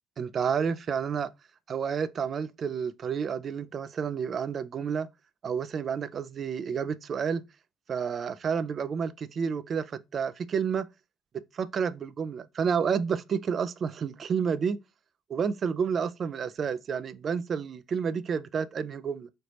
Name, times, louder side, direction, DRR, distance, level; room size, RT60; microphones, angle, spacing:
voice 1, 0.2-1.3 1.7-5.1 5.4-7.4 7.9-10.9 11.3-14.8 15.3-19.3, right 6 dB, 50° right, 0.3 m, -30 dB
3.2 x 2.8 x 2.8 m
hypercardioid pair, 50°, 0 cm